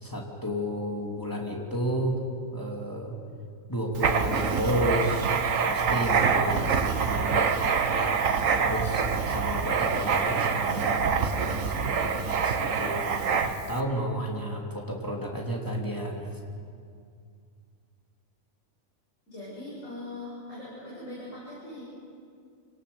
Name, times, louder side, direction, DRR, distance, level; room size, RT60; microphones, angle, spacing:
voice 1, 0.0-2.2 2.5-3.1 3.7-7.6 8.0-13.2 13.4-16.3, equal, 15° left, -1 dB, 2.9 m, -32 dB
Writing, 3.9-13.8, right 6 dB, 80° right, 1.5 m, -26 dB
voice 2, 19.3-21.8, left 1 dB, 70° left, -8 dB, 7.5 m, -40 dB
27.5 x 18.5 x 7.0 m, 2.3 s
omnidirectional pair, 1.4 m